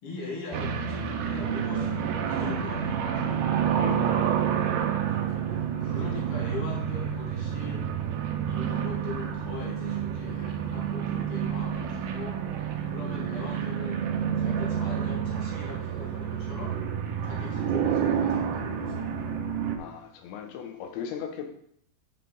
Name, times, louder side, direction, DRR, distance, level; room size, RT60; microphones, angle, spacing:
voice 1, 0.0-3.5 5.8-7.8 8.4-12.4 12.9-14.0 14.4-16.8 17.2-19.1, left 3 dB, 65° left, -2 dB, 1.4 m, -40 dB
sound 1, 0.5-19.8, right 8 dB, 80° right, 2.9 m, -29 dB
voice 2, 3.8-4.8 19.8-21.5, left 8 dB, 80° left, 5 dB, 3.1 m, -38 dB
8.7 x 5.7 x 3.8 m, 0.68 s
omnidirectional pair, 5.2 m